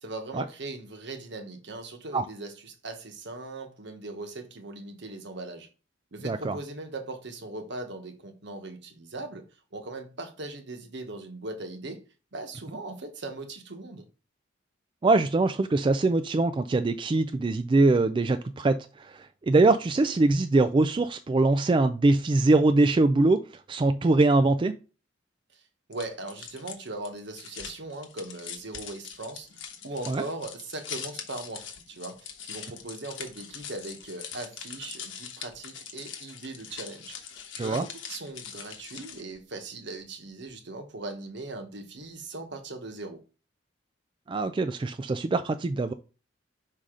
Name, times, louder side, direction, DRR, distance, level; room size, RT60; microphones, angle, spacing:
voice 1, 0.0-5.7 6.1-9.5 9.7-12.0 12.3-14.1 25.5-25.6 25.9-32.2 32.4-37.2 37.6-43.2, right 2 dB, 65° right, 1.2 m, -39 dB
voice 2, 6.2-6.6 15.0-23.4 23.7-24.7 30.1-30.2 37.6-37.8 44.3-45.9, right 2 dB, 25° right, 0.3 m, -23 dB
sound 1, 25.9-39.4, left 7 dB, 85° left, 1.1 m, -42 dB
5.6 x 4.8 x 3.7 m
head